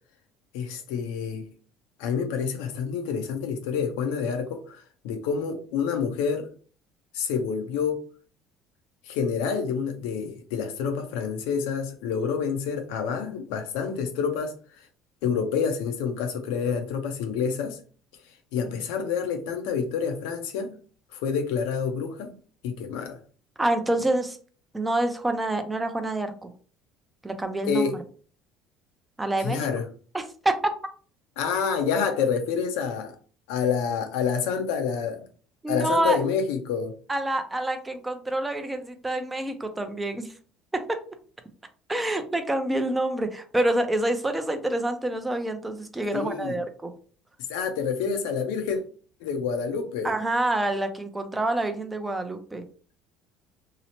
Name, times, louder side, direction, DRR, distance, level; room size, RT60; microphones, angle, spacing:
voice 1, 0.5-1.5 2.0-6.5 7.1-8.0 9.1-14.5 15.2-17.8 18.5-20.7 21.1-22.3 22.6-23.2 27.7-27.9 29.4-29.8 31.4-33.2 33.5-35.2 35.7-36.9 46.1-46.6 47.5-48.8 49.2-50.1, left 6 dB, 85° left, 0.5 m, -28 dB
voice 2, 23.6-24.4 24.7-26.5 27.2-27.9 29.2-29.7 30.1-30.5 35.6-36.2 37.1-40.3 40.7-41.0 41.9-46.9 50.0-52.7, right 1 dB, 10° right, 0.4 m, -27 dB
2.8 x 2.0 x 2.8 m
cardioid pair, 115°, 0 cm